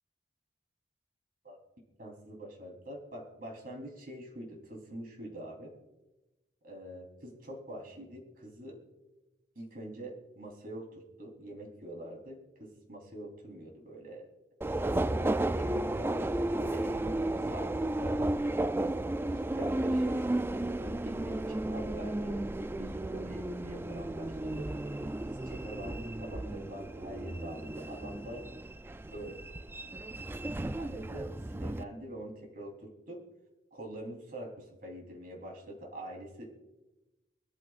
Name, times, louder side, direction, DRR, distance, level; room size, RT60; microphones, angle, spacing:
voice 1, 2.0-5.7 6.6-8.8 9.5-14.3 15.0-18.6 19.3-22.4 22.7-24.7 25.2-28.4 29.1-29.4 29.9-30.0 30.8-31.3 31.5-33.2 33.7-36.7, right 1 dB, 55° right, 0 dB, 3.4 m, -45 dB
Subway metro underground, 14.6-31.8, right 1 dB, 15° right, 0.3 m, -33 dB
24.0 x 13.5 x 2.4 m, 1.0 s
head